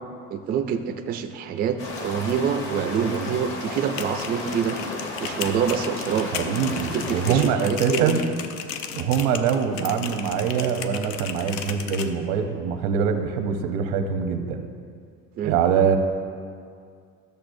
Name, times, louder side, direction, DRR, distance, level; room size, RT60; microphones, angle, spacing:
voice 1, 0.3-4.8 5.2-6.3 6.9-8.2 15.4-15.6, right 7 dB, 30° right, 6 dB, 0.4 m, -26 dB
sound 1, 1.8-7.5, left 2 dB, 45° left, 1.2 m, -34 dB
sound 2, 3.8-12.1, left 7 dB, 85° left, 0.6 m, -35 dB
voice 2, 6.3-8.2 8.9-14.7 15.4-16.0, right 7 dB, 90° right, 6 dB, 0.8 m, -24 dB
13.5 x 6.8 x 2.6 m, 2.2 s
cardioid pair, 175°, 30 cm